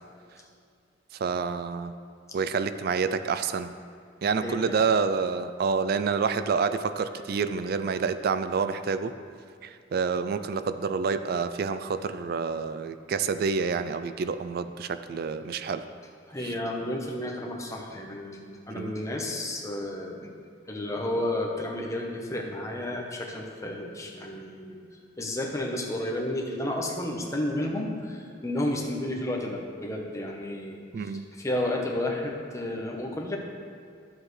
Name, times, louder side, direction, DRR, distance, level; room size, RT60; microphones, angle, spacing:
voice 1, 1.1-1.9 2.3-3.7 4.2-9.1 9.6-15.8 16.4-16.5 18.7-19.0 30.9-31.2, right 5 dB, 55° right, 11 dB, 0.3 m, -28 dB
voice 2, 16.3-20.3 20.7-24.8 25.2-31.1 31.4-33.4, left 1 dB, 15° left, 0 dB, 1.0 m, -32 dB
11.0 x 7.2 x 3.2 m, 2.3 s
head